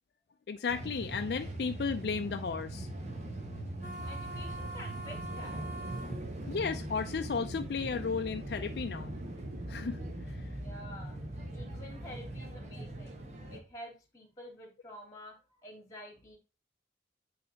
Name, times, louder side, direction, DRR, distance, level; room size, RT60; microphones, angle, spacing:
voice 1, 0.5-2.9 6.5-9.2 9.7-10.0, left 5 dB, 65° left, 0.4 m, -34 dB
sound 1, 0.7-13.6, right 1 dB, 40° right, 1.1 m, -41 dB
sound 2, 3.8-12.6, right 2 dB, 25° right, 2.8 m, -48 dB
voice 2, 4.0-5.6 6.2-6.6 10.5-11.2 11.5-13.2 13.5-16.4, left 1 dB, 20° left, 2.3 m, -49 dB
sound 3, 5.3-10.3, right 2 dB, 55° right, 0.6 m, -48 dB
8.8 x 3.2 x 4.0 m
head